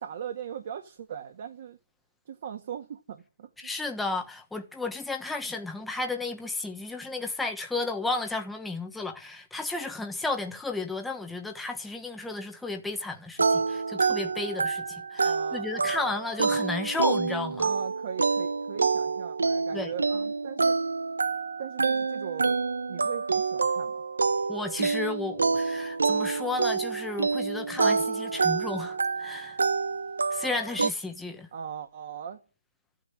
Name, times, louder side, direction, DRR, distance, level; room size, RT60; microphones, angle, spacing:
voice 1, 0.0-1.8 2.3-3.5 15.2-16.1 17.6-20.8 21.6-22.6 22.9-24.0 31.5-32.4, right 8 dB, 30° right, 1.9 m, -39 dB
voice 2, 3.6-17.7 19.7-19.9 24.5-29.6 30.3-31.5, left 3 dB, ahead, 1.2 m, -33 dB
sound 1, 13.4-30.9, right 4 dB, 70° right, 1.1 m, -27 dB
14.5 x 10.0 x 9.1 m
hypercardioid pair, 170°, 0 cm